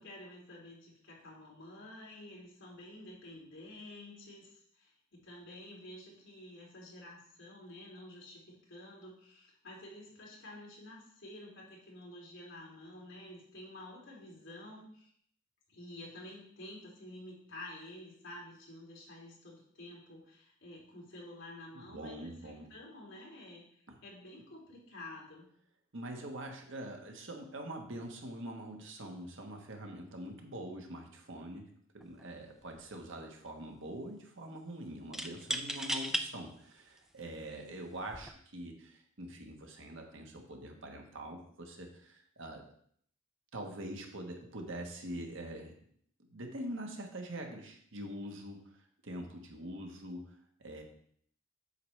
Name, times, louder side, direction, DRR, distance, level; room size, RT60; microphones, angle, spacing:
voice 1, 0.0-15.1 15.7-25.5, left 1 dB, 65° left, -3 dB, 2.8 m, -50 dB
voice 2, 21.7-22.7 23.9-24.0 25.9-31.6 31.9-42.6 43.5-45.7 46.3-48.6 49.0-50.2 50.6-50.8, right 1 dB, 65° right, 2 dB, 1.4 m, -44 dB
sound 1, 32.0-32.2 32.6-33.2 35.1-36.3 37.0-37.1 38.0-38.3, right 1 dB, ahead, 0.4 m, -36 dB
8.2 x 6.8 x 3.3 m, 0.63 s
head